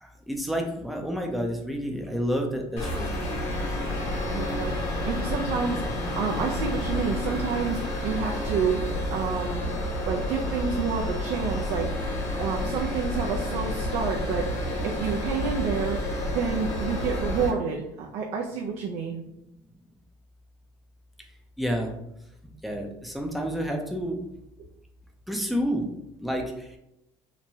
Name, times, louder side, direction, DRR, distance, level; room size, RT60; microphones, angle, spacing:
voice 1, 0.0-3.1 21.6-21.9 22.6-24.2 25.3-25.9 26.2-26.8, equal, ahead, 1 dB, 0.5 m, -29 dB
sound 1, 2.8-17.5, left 1 dB, 65° left, 1.3 m, -30 dB
voice 2, 4.3-9.6 10.1-16.0 16.3-19.2, right 6 dB, 70° right, 0 dB, 0.4 m, -29 dB
3.0 x 2.2 x 2.7 m, 0.84 s
cardioid pair, 115°, 12 cm